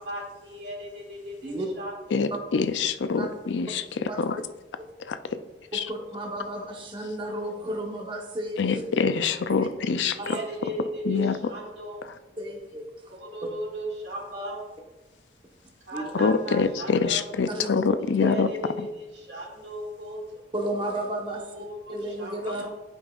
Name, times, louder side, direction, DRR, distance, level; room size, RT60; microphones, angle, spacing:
voice 1, 0.0-2.2 10.1-12.0 13.1-14.6 15.9-17.2 18.2-20.5 21.4-22.7, right 1 dB, 70° right, -2 dB, 2.2 m, -36 dB
voice 2, 2.1-4.4 5.1-5.4 5.7-5.9 8.6-10.4 11.1-11.4 16.1-18.5 18.8-18.9, left 5 dB, 90° left, 11 dB, 0.5 m, -25 dB
voice 3, 5.7-8.8 9.5-9.7 10.2-10.4 12.4-12.8 15.9-16.0 17.5-17.7 20.5-21.4 21.9-22.7, right 1 dB, 30° right, 1 dB, 1.0 m, -33 dB
12.0 x 5.4 x 2.4 m, 1.1 s
head